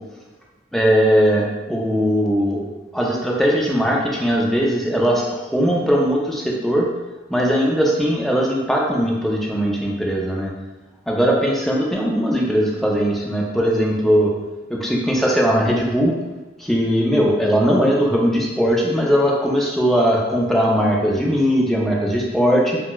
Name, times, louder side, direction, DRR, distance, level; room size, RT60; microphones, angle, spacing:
voice 1, 0.7-6.9 7.3-10.5 11.1-14.3 14.7-16.1 16.6-22.8, equal, ahead, -3 dB, 0.4 m, -19 dB
4.2 x 2.1 x 2.2 m, 1.1 s
head